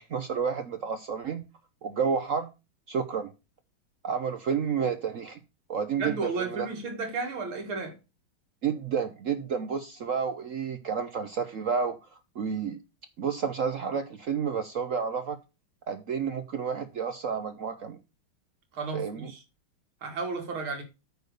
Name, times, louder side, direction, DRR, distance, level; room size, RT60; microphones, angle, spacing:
voice 1, 0.0-1.4 1.8-2.5 2.9-3.3 4.0-5.4 5.7-6.7 8.6-12.0 12.4-12.8 13.2-15.4 15.9-18.0 18.9-19.3, right 6 dB, 65° right, 0.8 m, -30 dB
voice 2, 6.0-7.9 18.7-19.4 20.0-20.8, right 3 dB, 80° right, 2.9 m, -33 dB
9.2 x 4.7 x 6.5 m
omnidirectional pair, 2.2 m